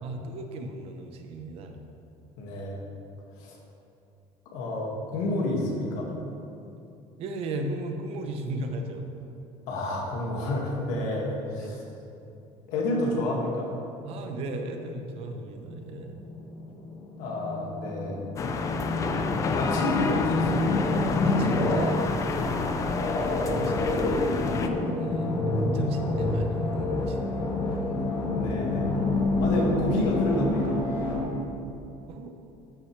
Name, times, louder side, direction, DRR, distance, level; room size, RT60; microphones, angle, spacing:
voice 1, 0.0-1.8 7.2-9.1 11.6-12.0 14.0-16.2 21.2-22.5 23.0-24.6 24.9-27.9 32.1-32.3, right 2 dB, 55° right, 5 dB, 0.8 m, -36 dB
voice 2, 2.4-2.8 3.4-3.6 4.5-6.1 9.7-11.8 12.7-13.7 17.2-18.2 18.5-18.6 19.6-20.9 28.2-28.9 29.4-30.8, left 2 dB, 80° left, -2 dB, 2.0 m, -29 dB
sound 1, 14.8-31.3, left 2 dB, 40° left, 1.5 m, -28 dB
sound 2, 18.4-24.7, left 4 dB, 25° left, 0.4 m, -29 dB
13.0 x 6.5 x 3.2 m, 2.7 s
cardioid pair, 165°, 12 cm